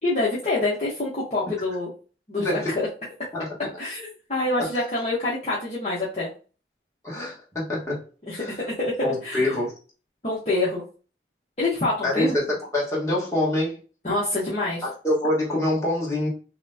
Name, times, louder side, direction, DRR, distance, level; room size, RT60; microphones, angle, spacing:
voice 1, 0.0-1.9 2.3-2.9 3.8-6.3 8.3-9.5 10.2-10.8 11.6-12.4 14.0-14.8, left 2 dB, 40° left, -7 dB, 1.0 m, -26 dB
voice 2, 2.4-2.7 3.3-3.7 7.0-8.0 8.4-8.5 9.0-9.7 12.0-13.8 14.8-16.3, left 1 dB, 15° left, -5 dB, 1.5 m, -25 dB
5.8 x 2.2 x 2.7 m, 0.37 s
head